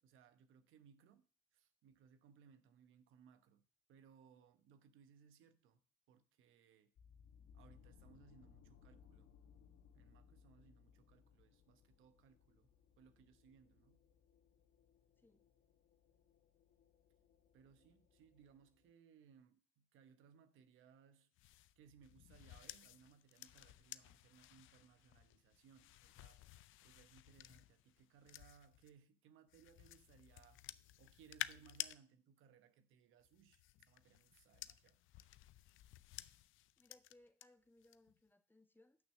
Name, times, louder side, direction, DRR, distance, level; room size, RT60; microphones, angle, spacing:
voice 1, 0.0-1.2 1.5-3.6 3.9-5.8 6.1-6.9 7.5-9.3 9.9-12.7 13.0-14.0 17.5-21.3 21.8-26.4 26.8-30.6 31.0-35.0, right 7 dB, 90° right, 1.0 m, -66 dB
sound 1, 7.0-18.9, left 7 dB, 65° left, 1.3 m, -67 dB
voice 2, 15.2-15.5 36.8-39.0, left 1 dB, 10° left, 1.2 m, -68 dB
sound 2, 21.4-28.9 29.5-32.0 33.2-37.4 37.8-38.2, left 15 dB, 85° left, 0.5 m, -53 dB
9.1 x 6.2 x 6.5 m
cardioid pair, 90°, 20 cm